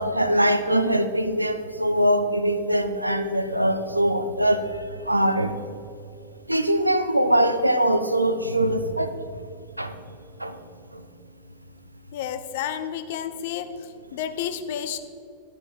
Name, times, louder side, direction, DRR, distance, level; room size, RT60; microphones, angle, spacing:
voice 1, 0.0-5.5 6.5-9.3 9.8-10.0 10.4-10.6 10.9-11.1, right 1 dB, 85° right, 9 dB, 0.7 m, -22 dB
voice 2, 12.1-15.0, left 9 dB, 55° left, 11 dB, 0.8 m, -31 dB
11.5 x 10.5 x 4.4 m, 2.6 s
figure-of-eight pair, 90°, 0 cm